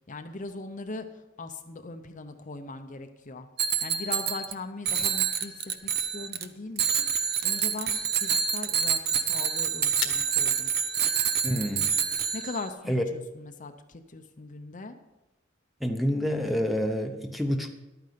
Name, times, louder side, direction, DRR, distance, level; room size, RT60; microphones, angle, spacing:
voice 1, 0.1-3.5 3.8-10.7 12.3-15.0, left 3 dB, 40° left, 7 dB, 0.7 m, -40 dB
Bicycle bell, 3.6-4.5 4.8-6.4 6.8-12.7, right 7 dB, 50° right, 0.7 m, -27 dB
sound 1, 5.7-13.7, left 9 dB, 90° left, 1.5 m, -45 dB
voice 2, 11.4-11.9 12.9-13.0 15.8-17.7, equal, ahead, 5 dB, 0.8 m, -28 dB
12.0 x 9.4 x 5.1 m, 1.0 s
head